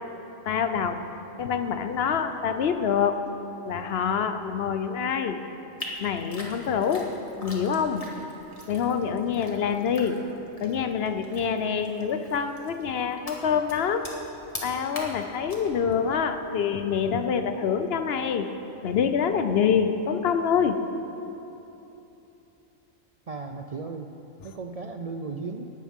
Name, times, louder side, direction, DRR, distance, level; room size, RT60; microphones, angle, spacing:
voice 1, 0.5-1.0 1.4-3.3 3.6-5.4 6.0-7.2 7.4-8.1 8.7-10.3 10.6-14.1 14.6-18.5 18.8-20.9, left 7 dB, 55° left, 9 dB, 0.9 m, -26 dB
sound 1, 5.8-16.6, left 1 dB, 30° left, 1.6 m, -43 dB
voice 2, 23.3-24.1 24.4-25.7, right 4 dB, 70° right, 4 dB, 0.3 m, -35 dB
17.5 x 12.0 x 3.7 m, 3.0 s
omnidirectional pair, 1.3 m